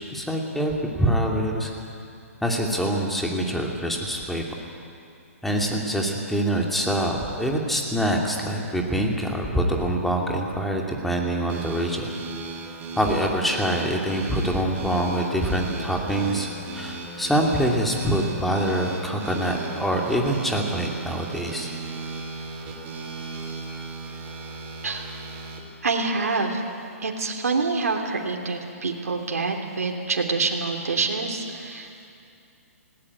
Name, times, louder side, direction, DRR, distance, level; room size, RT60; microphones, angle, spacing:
voice 1, 0.1-1.7 2.4-4.4 5.4-12.1 13.0-16.5 16.7-21.7, right 1 dB, ahead, 0 dB, 2.4 m, -25 dB
sound 1, 11.5-25.6, right 3 dB, 20° right, 3.0 m, -36 dB
voice 2, 24.8-25.2 25.8-26.6 27.0-32.1, right 4 dB, 85° right, 1 dB, 3.0 m, -26 dB
18.5 x 18.0 x 9.5 m, 2.6 s
hypercardioid pair, 145°, 8 cm